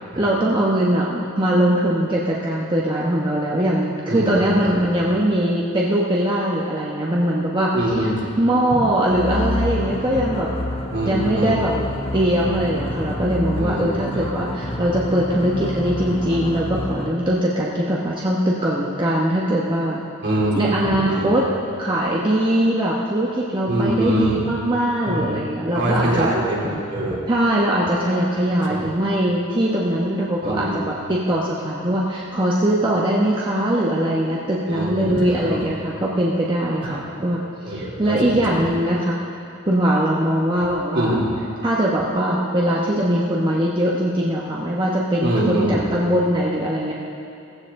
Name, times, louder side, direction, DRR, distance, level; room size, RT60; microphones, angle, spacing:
voice 1, 0.2-7.7 8.4-10.5 11.0-11.7 12.1-20.0 20.5-21.4 21.8-26.3 27.3-39.2 39.7-41.2 41.6-46.9, right 1 dB, 25° right, -4 dB, 1.0 m, -21 dB
voice 2, 4.1-4.8 7.7-8.3 8.7-8.8 10.9-11.7 13.5-14.3 20.2-21.3 23.7-24.3 25.0-25.4 25.7-27.2 28.7-28.8 30.4-30.8 34.7-35.6 36.9-37.0 37.6-38.6 40.6-40.7 40.9-41.3 45.2-45.8, right 1 dB, 55° right, -4 dB, 3.2 m, -24 dB
sound 1, 9.1-17.3, left 1 dB, 25° left, 1.1 m, -28 dB
16.5 x 15.5 x 3.7 m, 2.7 s
head